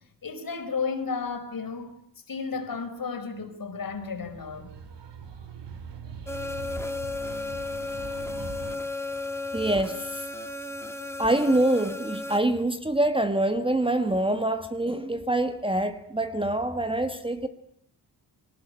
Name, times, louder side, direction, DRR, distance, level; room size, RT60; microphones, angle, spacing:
voice 1, 0.2-2.0 2.3-4.7, left 5 dB, 50° left, 4.7 m, -33 dB
sound 1, 3.8-8.8, right 6 dB, 75° right, 3.8 m, -42 dB
sound 2, 6.3-12.4, left 2 dB, 5° left, 2.2 m, -34 dB
voice 2, 9.5-10.3 11.2-17.5, right 1 dB, 10° right, 1.5 m, -25 dB
21.5 x 19.0 x 8.8 m
cardioid pair, 100°, 43 cm